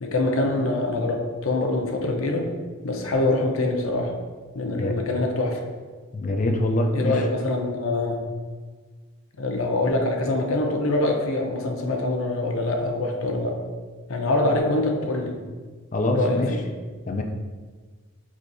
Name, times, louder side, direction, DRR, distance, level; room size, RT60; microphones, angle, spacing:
voice 1, 0.0-2.5 2.8-4.1 4.5-5.6 6.9-8.2 9.4-13.6 14.1-15.4 16.1-16.6, left 2 dB, 85° left, 2 dB, 0.7 m, -24 dB
voice 2, 6.1-7.2 15.9-16.5 17.1-17.2, left 1 dB, 35° left, 4 dB, 0.4 m, -24 dB
6.2 x 3.2 x 2.6 m, 1.4 s
head